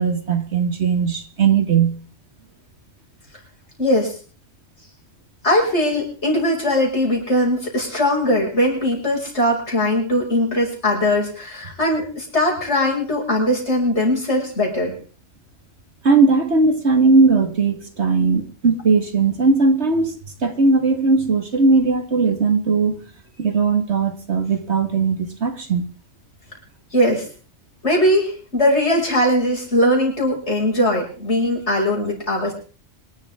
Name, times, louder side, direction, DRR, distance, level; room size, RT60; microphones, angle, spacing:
voice 1, 0.0-1.9 16.0-23.0 23.4-25.9, right 4 dB, 55° right, 7 dB, 2.1 m, -18 dB
voice 2, 3.8-4.1 5.4-14.9 26.9-27.3 27.8-32.5, left 1 dB, 60° left, -2 dB, 6.3 m, -20 dB
26.0 x 12.0 x 3.7 m, 0.40 s
omnidirectional pair, 1.3 m